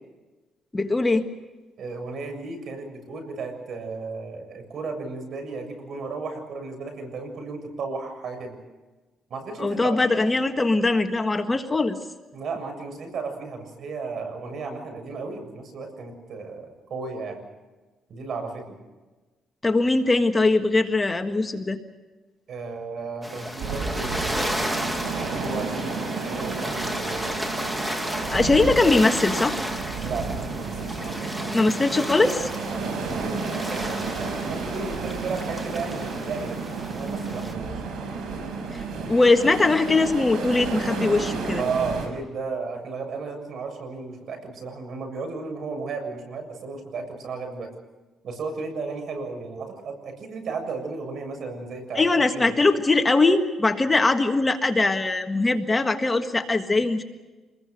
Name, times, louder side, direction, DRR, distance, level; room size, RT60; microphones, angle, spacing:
voice 1, 0.7-1.3 9.6-12.0 19.6-21.8 28.3-29.7 31.5-32.5 38.7-41.6 51.9-57.0, left 3 dB, 20° left, 6 dB, 1.6 m, -21 dB
voice 2, 1.8-8.6 9.3-10.2 12.3-17.4 18.1-18.8 22.5-27.4 30.0-31.6 32.7-34.1 34.5-37.8 41.5-47.7 48.2-52.6, right 4 dB, 60° right, 6 dB, 7.1 m, -34 dB
sound 1, 23.2-37.5, equal, 10° right, 2.4 m, -33 dB
sound 2, 23.6-42.1, right 4 dB, 75° right, 6.3 m, -32 dB
27.5 x 21.0 x 6.7 m, 1.2 s
cardioid pair, 105°, 0 cm